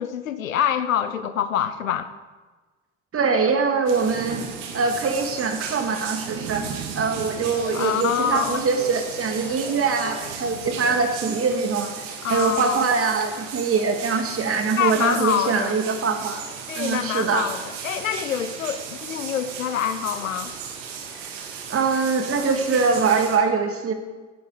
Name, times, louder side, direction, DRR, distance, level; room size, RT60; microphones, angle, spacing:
voice 1, 0.0-2.1 7.7-8.6 12.2-12.8 14.8-15.7 16.7-20.5, left 9 dB, 80° left, 12 dB, 0.9 m, -26 dB
voice 2, 3.1-4.4 4.7-11.9 12.3-16.5 16.8-17.5 21.2-21.3 21.7-23.9, right 4 dB, 35° right, 5 dB, 2.5 m, -23 dB
sound 1, 3.9-23.4, right 6 dB, 65° right, 2.3 m, -35 dB
sound 2, 7.2-11.1, left 3 dB, 55° left, 4.4 m, -40 dB
16.0 x 11.0 x 5.1 m, 1.3 s
figure-of-eight pair, 65°, 39 cm